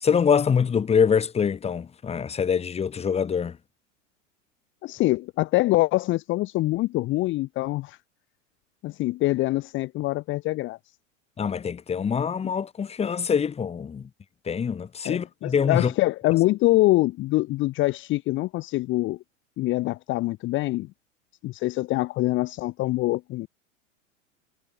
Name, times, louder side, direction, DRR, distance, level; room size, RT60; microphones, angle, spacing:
voice 1, 0.0-3.6 11.4-14.1 14.4-15.9, left 7 dB, 15° left, 1.5 m, -24 dB
voice 2, 4.8-8.0 8.8-10.8 15.0-19.2 19.6-20.9 21.4-23.5, left 18 dB, 30° left, 0.9 m, -24 dB
figure-of-eight pair, 95°, 39 cm